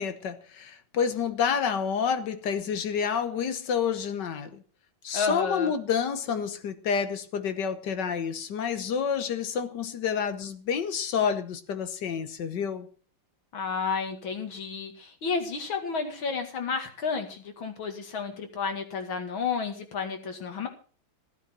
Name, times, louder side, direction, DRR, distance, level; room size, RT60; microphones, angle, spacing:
voice 1, 0.0-4.6 5.0-12.9, left 7 dB, 65° left, 1.6 m, -29 dB
voice 2, 5.1-5.7 13.5-20.7, left 5 dB, 90° left, 2.8 m, -31 dB
15.0 x 9.1 x 5.9 m
omnidirectional pair, 2.1 m